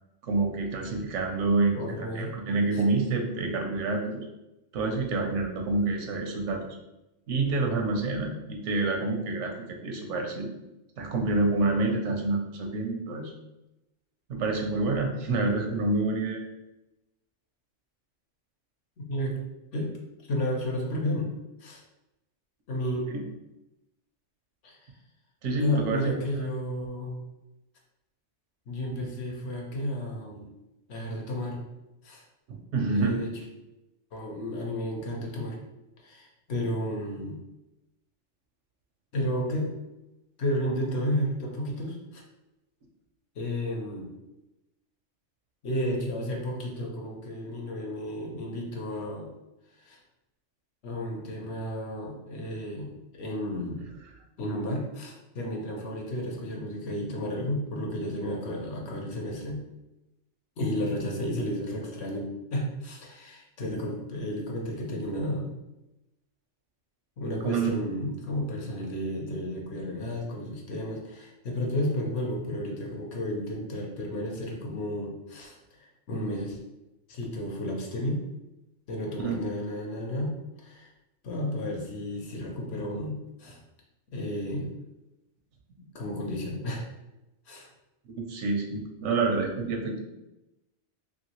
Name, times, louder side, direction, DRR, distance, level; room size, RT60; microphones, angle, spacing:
voice 1, 0.2-4.2 4.7-6.7 7.3-10.5 11.0-13.3 14.3-16.4 23.1-23.2 25.4-26.2 32.5-33.2 67.4-67.7 79.2-79.4 88.3-90.0, right 3 dB, 80° right, 2 dB, 0.9 m, -28 dB
voice 2, 1.7-2.3 2.7-2.8 19.1-19.4 19.7-19.9 20.3-21.3 21.6-21.8 22.7-23.1 24.6-24.9 25.6-27.3 28.7-30.5 30.9-31.6 32.0-32.2 32.9-33.3 34.1-35.6 36.0-37.4 39.1-39.7 40.4-42.2 43.4-44.1 45.6-49.3 49.8-50.0 50.8-53.8 54.4-59.6 60.6-65.5 67.2-76.6 77.1-78.2 78.9-80.9 81.2-83.6 84.1-84.7 85.9-86.8 87.5-87.7, equal, 65° left, 0 dB, 0.9 m, -32 dB
2.9 x 2.7 x 2.9 m, 0.95 s
omnidirectional pair, 1.3 m